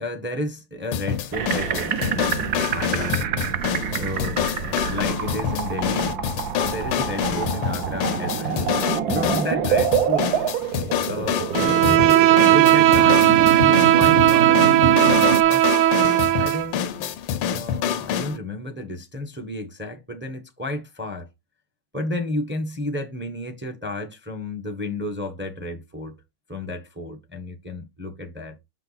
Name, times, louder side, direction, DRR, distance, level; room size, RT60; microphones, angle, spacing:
voice 1, 0.0-3.2 3.9-6.1 6.5-8.7 9.1-10.4 11.1-15.7 16.4-16.8 17.4-21.3 21.9-26.2 26.5-28.6, left 2 dB, 15° right, 0.4 m, -32 dB
sound 1, 0.9-18.4, left 9 dB, 90° left, 1.6 m, -27 dB
sound 2, 1.3-15.4, right 7 dB, 60° right, 1.0 m, -26 dB
Bowed string instrument, 11.5-16.7, right 13 dB, 85° right, 1.5 m, -17 dB
5.9 x 5.7 x 4.1 m
omnidirectional pair, 2.3 m